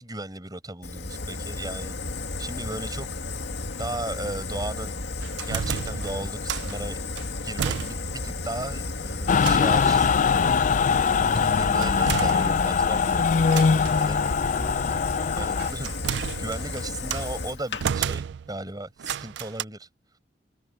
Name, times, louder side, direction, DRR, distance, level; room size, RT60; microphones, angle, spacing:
voice 1, 0.0-2.0 2.4-3.1 3.8-5.0 5.4-7.0 7.4-10.6 11.3-15.0 15.4-15.9 16.4-18.2 18.5-19.9, right 2 dB, 25° right, 5.2 m, -36 dB
Fire, 0.8-17.8, left 3 dB, 80° left, 2.1 m, -33 dB
sound 1, 5.2-6.8 7.2-8.3 8.6-8.7 9.3-10.0 11.8-12.9 13.5-14.1 15.2-17.3 17.8-18.6 19.0-19.6, right 8 dB, 75° right, 0.3 m, -32 dB
Mechanical fan, 9.3-15.7, left 5 dB, 45° left, 0.4 m, -22 dB
head